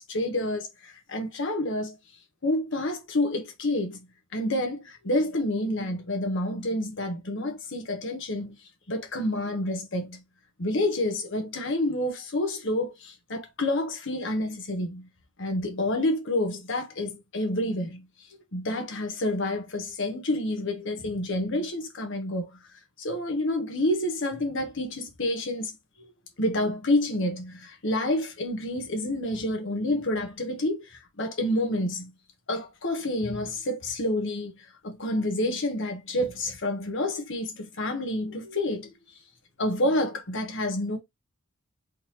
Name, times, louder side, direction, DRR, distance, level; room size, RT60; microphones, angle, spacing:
voice 1, 0.0-2.0 2.4-4.1 4.3-8.6 8.9-10.2 10.6-15.1 15.4-18.1 18.5-22.6 23.0-26.1 26.4-32.1 32.5-38.9 39.6-41.0, left 1 dB, 60° left, 1.1 m, -29 dB
3.8 x 3.3 x 2.9 m
head